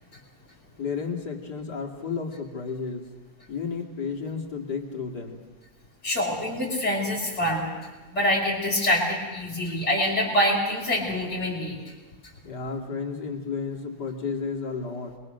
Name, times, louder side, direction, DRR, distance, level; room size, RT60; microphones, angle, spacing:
voice 1, 0.8-3.1 3.5-5.4 12.4-15.1, left 5 dB, 90° left, 2 dB, 3.1 m, -32 dB
voice 2, 6.0-7.7 8.1-11.8, left 1 dB, 45° left, -5 dB, 5.6 m, -25 dB
27.5 x 22.5 x 6.5 m, 1.3 s
omnidirectional pair, 1.7 m